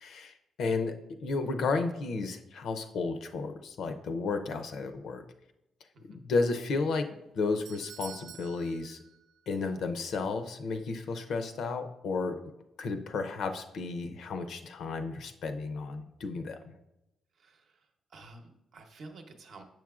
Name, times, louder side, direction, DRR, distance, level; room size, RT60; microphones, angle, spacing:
voice 1, 0.0-5.2 6.1-7.1 7.3-9.0 9.5-12.5 12.8-16.7, left 4 dB, 70° left, 7 dB, 0.5 m, -33 dB
Doorbell, 7.2-9.7 10.0-10.1 10.8-10.9, right 10 dB, 80° right, 0.3 m, -50 dB
voice 2, 18.1-19.6, right 3 dB, 60° right, 4 dB, 0.8 m, -49 dB
6.7 x 6.1 x 2.4 m, 0.89 s
cardioid pair, 120°, 0 cm